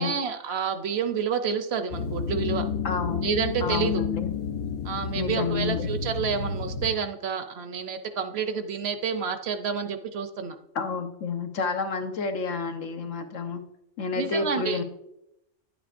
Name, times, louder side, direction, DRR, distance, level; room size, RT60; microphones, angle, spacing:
voice 1, 0.0-2.6 3.2-4.0 4.8-10.6 14.1-14.8, right 6 dB, 60° right, 8 dB, 0.8 m, -29 dB
sound 1, 1.9-6.9, left 6 dB, 60° left, 0.6 m, -31 dB
voice 2, 2.8-3.3 3.6-4.3 5.2-5.9 10.7-13.6 14.0-14.8, left 4 dB, 85° left, 6 dB, 1.3 m, -29 dB
10.0 x 8.6 x 2.5 m, 0.82 s
omnidirectional pair, 1.3 m